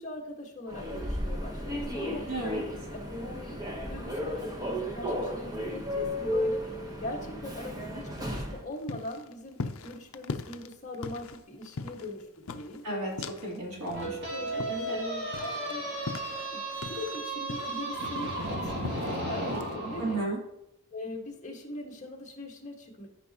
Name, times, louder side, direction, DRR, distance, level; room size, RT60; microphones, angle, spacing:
voice 1, 0.0-2.2 3.1-3.6 3.9-6.6 7.0-12.8 14.3-14.6 14.9-15.9 16.5-20.2 20.9-23.1, left 2 dB, 35° left, -1 dB, 1.5 m, -41 dB
Human voice / Subway metro underground, 0.7-8.6, equal, 15° right, 1.0 m, -34 dB
voice 2, 2.3-2.6 12.8-14.2 14.7-15.0 20.0-20.4, right 2 dB, 90° right, -3 dB, 2.9 m, -33 dB
sound 1, 8.2-13.6 13.9-17.2 17.5-19.2 19.5-19.8, left 4 dB, 65° left, 0.5 m, -40 dB
sound 2, 13.9-20.2, right 1 dB, 50° right, 2.7 m, -34 dB
13.5 x 5.1 x 2.9 m, 0.83 s
head